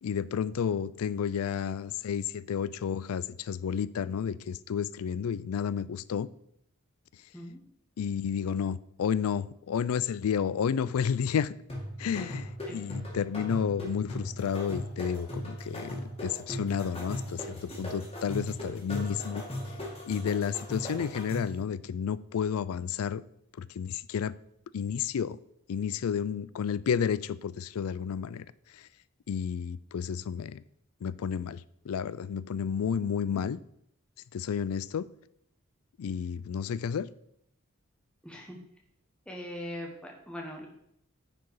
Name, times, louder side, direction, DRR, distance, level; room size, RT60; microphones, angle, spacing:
voice 1, 0.0-6.3 8.0-11.5 12.0-19.4 20.1-23.2 23.6-24.4 24.7-25.4 25.7-28.5 28.7-28.9 29.3-30.6 31.0-33.6 34.3-35.1 36.0-37.1, left 7 dB, 85° left, 0.4 m, -31 dB
sound 1, 11.7-21.6, equal, 25° left, 2.0 m, -38 dB
voice 2, 38.2-38.6 39.3-40.7, left 1 dB, 5° left, 1.2 m, -41 dB
9.6 x 4.7 x 4.7 m
head